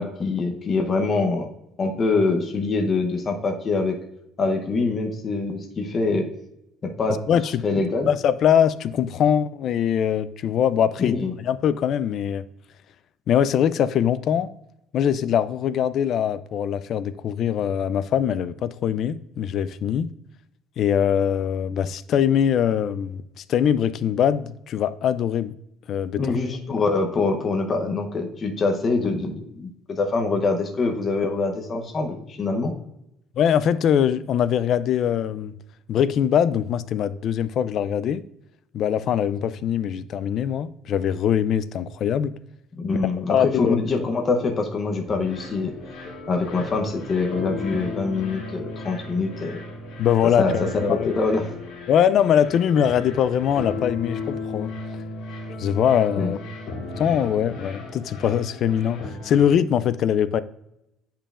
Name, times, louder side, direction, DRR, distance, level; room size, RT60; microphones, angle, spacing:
voice 1, 0.0-1.5 1.8-4.0 4.4-6.3 6.8-7.2 7.6-8.1 11.0-11.3 26.2-32.7 42.8-45.7 46.3-49.6 50.4-51.4 56.2-56.3, left 3 dB, 25° left, 3 dB, 0.8 m, -24 dB
voice 2, 7.3-7.6 8.1-12.4 13.3-14.5 14.9-20.1 20.8-25.5 25.9-26.2 33.4-35.5 35.9-38.2 38.7-42.3 43.3-43.8 50.0-51.1 51.9-54.7 55.6-56.4 57.0-60.4, left 9 dB, 45° left, 15 dB, 0.3 m, -22 dB
sound 1, 45.0-59.5, left 3 dB, 60° left, 2.4 m, -35 dB
8.6 x 5.6 x 2.4 m, 0.83 s
cardioid pair, 170°, 0 cm